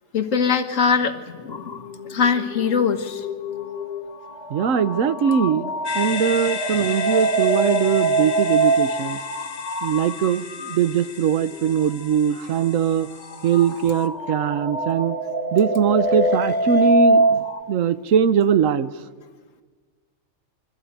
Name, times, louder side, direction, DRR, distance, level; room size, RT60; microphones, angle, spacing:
voice 1, 0.1-1.8 2.1-3.3, left 6 dB, 75° left, 8 dB, 1.7 m, -22 dB
sound 1, 1.5-10.8 11.5-11.7 13.2-17.6, right 2 dB, 35° left, 1.0 m, -24 dB
voice 2, 4.5-9.2 9.8-13.1 13.4-15.2 15.5-18.9, right 7 dB, 75° right, 14 dB, 1.2 m, -21 dB
sound 2, 5.8-14.0, left 7 dB, 55° left, 1.3 m, -35 dB
24.0 x 13.5 x 9.4 m, 1.5 s
omnidirectional pair, 1.4 m